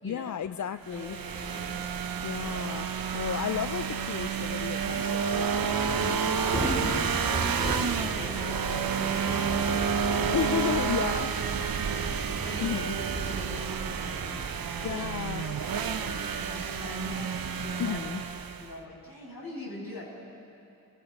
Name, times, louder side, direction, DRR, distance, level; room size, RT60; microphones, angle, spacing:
voice 1, 0.0-1.2 2.2-5.6 7.0-7.2 10.3-11.5 12.6-13.0 14.8-15.5 17.8-18.2, left 9 dB, 55° left, 13 dB, 0.5 m, -33 dB
voice 2, 0.9-2.0 2.3-2.6 6.0-7.6 7.9-10.3 11.1-11.3 11.5-15.0 15.4-18.0 18.6-20.1, left 1 dB, 75° left, -4 dB, 6.7 m, -43 dB
sound 1, 0.9-18.7, right 6 dB, 75° right, 0.9 m, -30 dB
Thunder / Rain, 3.5-18.8, equal, 15° left, 5.5 m, -38 dB
29.5 x 16.5 x 5.4 m, 2.6 s
cardioid pair, 60°, 36 cm